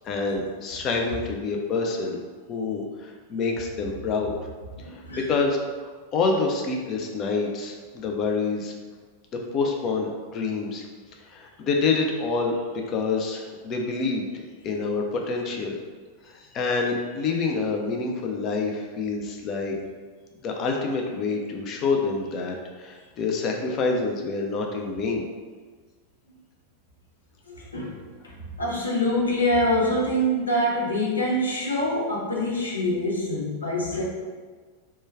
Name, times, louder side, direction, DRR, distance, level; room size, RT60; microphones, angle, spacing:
voice 1, 0.0-2.2 2.5-4.3 4.8-8.7 9.3-10.9 11.3-12.5 12.9-14.3 14.6-15.8 16.2-19.8 20.4-25.3, left 4 dB, 35° left, 1 dB, 0.5 m, -27 dB
voice 2, 4.8-5.3 27.5-34.0, equal, 75° left, -3 dB, 0.7 m, -25 dB
3.1 x 2.2 x 3.3 m, 1.5 s
figure-of-eight pair, 90°, 0 cm